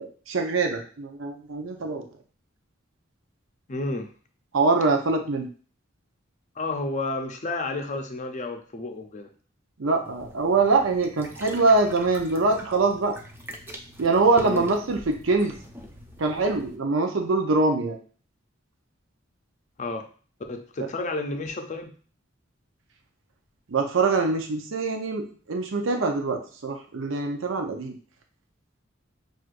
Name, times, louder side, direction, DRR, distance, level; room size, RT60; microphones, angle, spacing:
voice 1, 0.0-2.1 4.5-5.5 9.8-13.2 14.0-15.5 16.2-18.0 20.8-20.9 23.7-27.9, right 3 dB, 75° right, 3 dB, 0.6 m, -24 dB
voice 2, 3.7-4.1 6.6-9.3 14.4-14.7 19.8-20.0 20.5-21.9, left 2 dB, 40° left, 5 dB, 0.5 m, -31 dB
sound 1, 10.0-16.8, equal, 10° right, 0.5 m, -43 dB
6.1 x 2.5 x 2.5 m, 0.41 s
head